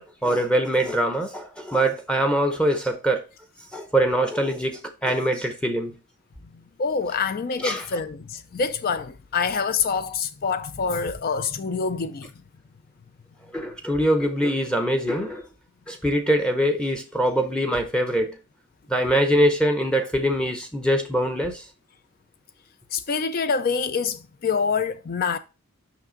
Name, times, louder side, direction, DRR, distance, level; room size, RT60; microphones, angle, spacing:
voice 1, 0.0-3.2 3.7-5.9 7.6-7.9 13.5-15.5 15.9-18.4 18.9-21.6, right 1 dB, 5° left, 0.7 m, -23 dB
voice 2, 6.5-12.3 22.9-25.4, left 5 dB, 40° left, 0.4 m, -26 dB
5.9 x 5.8 x 3.8 m
head